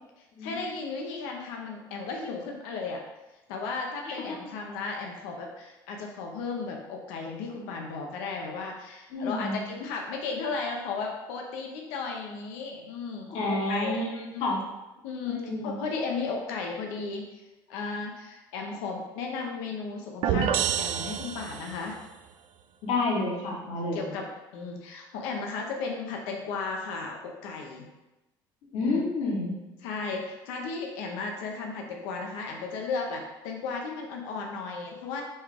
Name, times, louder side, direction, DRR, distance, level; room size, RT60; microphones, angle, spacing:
voice 1, 0.4-3.0 3.5-14.4 15.0-17.2 17.7-22.0 23.9-24.2 24.5-27.9 28.8-29.0 29.8-35.2, left 4 dB, 85° left, 1 dB, 0.6 m, -35 dB
voice 2, 9.1-9.6 13.3-14.6 15.3-15.8 22.8-24.0 28.7-29.5, left 2 dB, 70° left, -3 dB, 1.0 m, -29 dB
sound 1, 20.2-21.9, right 9 dB, 65° right, 0.4 m, -28 dB
5.3 x 2.4 x 3.3 m, 1.0 s
supercardioid pair, 95°, 10 cm